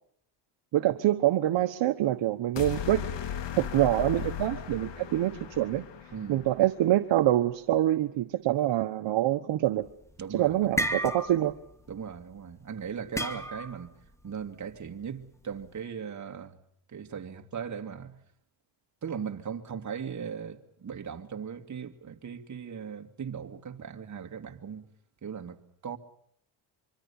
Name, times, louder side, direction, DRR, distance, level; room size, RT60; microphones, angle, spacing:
voice 1, 0.7-3.0 3.6-5.8 6.3-9.9 10.3-11.5, right 13 dB, 65° right, 1.3 m, -25 dB
sound 1, 2.6-6.8, left 9 dB, 60° left, 2.6 m, -37 dB
voice 2, 6.1-6.4 10.2-10.9 11.9-13.9 14.2-16.6 16.9-18.2 19.0-24.8 25.2-25.6 25.8-26.0, right 7 dB, 35° right, 2.3 m, -38 dB
sound 2, 9.9-10.2 10.5-11.6 11.9-12.1 13.2-13.9, equal, 5° left, 2.2 m, -31 dB
25.0 x 24.5 x 7.2 m
cardioid pair, 95°, 48 cm